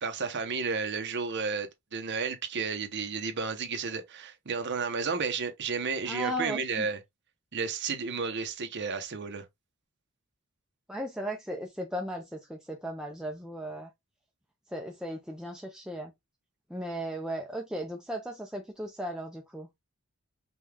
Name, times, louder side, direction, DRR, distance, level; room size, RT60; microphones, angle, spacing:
voice 1, 0.0-7.0 7.5-9.4, right 5 dB, 55° right, 0.8 m, -32 dB
voice 2, 6.1-6.9 10.9-13.9 14.7-16.1 16.7-19.7, right 1 dB, 5° right, 0.5 m, -36 dB
5.4 x 2.3 x 3.3 m
head